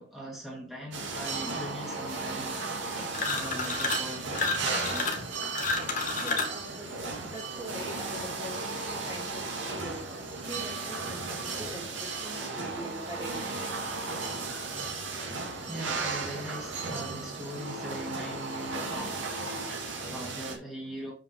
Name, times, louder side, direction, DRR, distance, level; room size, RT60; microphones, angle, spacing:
voice 1, 0.0-2.6 3.3-5.1 15.1-21.1, right 1 dB, ahead, 2.3 m, -41 dB
sound 1, 0.9-20.6, right 3 dB, 85° right, 2.7 m, -35 dB
sound 2, 3.1-4.1 4.3-6.6, left 3 dB, 40° left, 1.9 m, -30 dB
voice 2, 6.2-6.9 7.2-10.0 10.5-13.5, right 1 dB, 15° right, 2.5 m, -42 dB
7.7 x 5.5 x 4.8 m
head